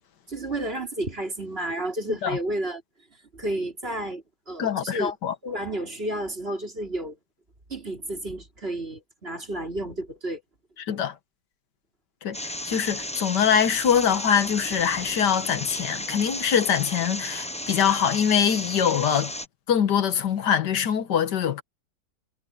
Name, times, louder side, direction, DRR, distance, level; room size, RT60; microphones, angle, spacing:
voice 1, 0.3-2.8 3.3-5.1 5.4-7.2 7.7-10.4, right 1 dB, 35° right, 3.7 m, -31 dB
voice 2, 4.6-5.3 10.8-11.1 12.2-12.4 12.6-19.3 19.7-21.6, left 8 dB, 85° left, 1.8 m, -23 dB
sound 1, 12.3-19.5, left 1 dB, 10° left, 0.3 m, -34 dB
omnidirectional pair, 1.8 m